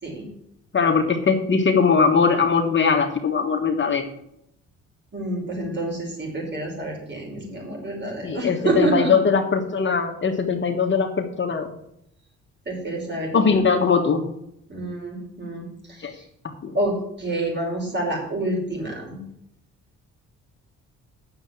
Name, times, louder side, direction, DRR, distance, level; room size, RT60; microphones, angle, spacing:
voice 1, 0.7-4.1 8.2-11.7 13.3-14.2 16.0-16.1 16.6-16.7, left 5 dB, 40° left, 4 dB, 1.5 m, -20 dB
voice 2, 5.1-9.1 12.7-13.6 14.7-16.3 16.7-19.2, right 2 dB, 35° right, -1 dB, 5.5 m, -28 dB
8.7 x 7.0 x 7.6 m, 0.77 s
cardioid pair, 90°, 30 cm